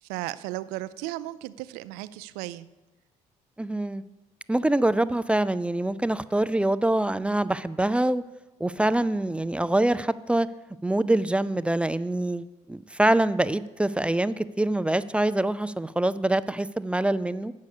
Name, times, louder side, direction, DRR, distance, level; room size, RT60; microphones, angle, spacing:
voice 1, 0.0-2.7, right 16 dB, 90° right, 15 dB, 0.4 m, -35 dB
voice 2, 3.6-4.0 4.5-8.2 8.6-10.5 10.8-17.5, right 1 dB, 10° right, 15 dB, 0.3 m, -25 dB
8.3 x 6.3 x 6.6 m, 1.1 s
supercardioid pair, 90°, 15 cm